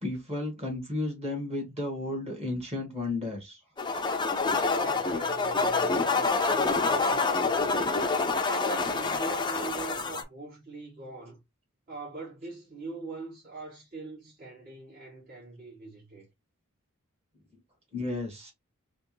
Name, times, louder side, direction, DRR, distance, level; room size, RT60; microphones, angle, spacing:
voice 1, 0.0-3.6 17.9-18.5, left 2 dB, 30° right, 1.6 m, -33 dB
sound 1, 3.8-10.2, left 4 dB, 20° left, 0.5 m, -27 dB
voice 2, 4.6-7.8 8.4-11.4 11.9-16.3, right 3 dB, 45° right, 1.9 m, -42 dB
3.4 x 2.9 x 3.0 m
head